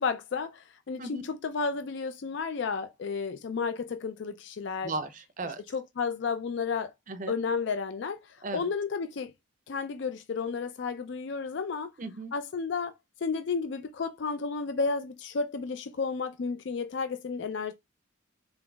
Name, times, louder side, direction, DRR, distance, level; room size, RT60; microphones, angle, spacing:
voice 1, 0.0-4.9 5.7-6.9 7.3-9.3 9.7-11.9 12.3-12.9 13.2-17.7, left 5 dB, 60° left, 0.4 m, -32 dB
voice 2, 4.8-5.6 7.1-7.4 8.4-8.7 12.0-12.3, right 2 dB, 40° right, 0.5 m, -36 dB
3.9 x 3.9 x 2.3 m
head